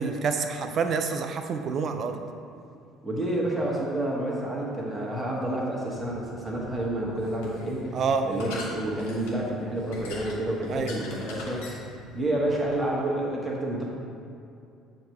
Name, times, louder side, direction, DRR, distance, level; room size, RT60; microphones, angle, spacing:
voice 1, 0.0-2.2 7.9-8.3 10.7-10.9, right 5 dB, 45° right, 7 dB, 0.5 m, -27 dB
voice 2, 3.0-7.9 8.2-11.7 12.1-13.9, right 1 dB, 15° right, -4 dB, 1.5 m, -29 dB
sound 1, 5.9-12.8, left 2 dB, 65° left, 1.1 m, -43 dB
7.6 x 2.9 x 5.3 m, 2.5 s
figure-of-eight pair, 55°, 0 cm